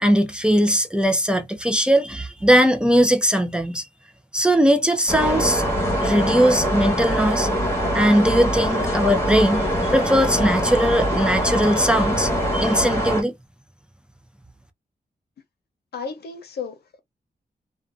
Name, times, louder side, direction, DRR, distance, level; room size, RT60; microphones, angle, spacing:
voice 1, 0.0-3.9 4.3-5.6 6.0-7.5 7.9-13.3, equal, 5° right, 0.4 m, -19 dB
sound 1, 5.1-13.2, equal, 15° left, 1.1 m, -23 dB
voice 2, 15.9-17.0, left 5 dB, 85° left, 0.6 m, -33 dB
2.5 x 2.2 x 2.4 m
wide cardioid pair, 125°, 16 cm